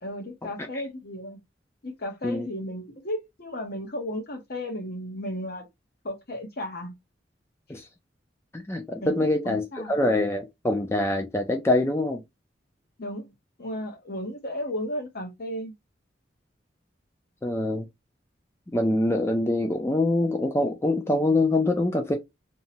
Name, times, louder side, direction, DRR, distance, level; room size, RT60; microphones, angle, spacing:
voice 1, 0.0-1.4 1.8-5.6 6.0-6.9 9.0-10.0 13.0-13.3 13.6-15.7, left 1 dB, 60° left, 0.9 m, -34 dB
voice 2, 8.5-12.2 17.4-17.9 18.7-22.1, left 2 dB, 15° left, 0.4 m, -24 dB
2.7 x 2.2 x 2.7 m
head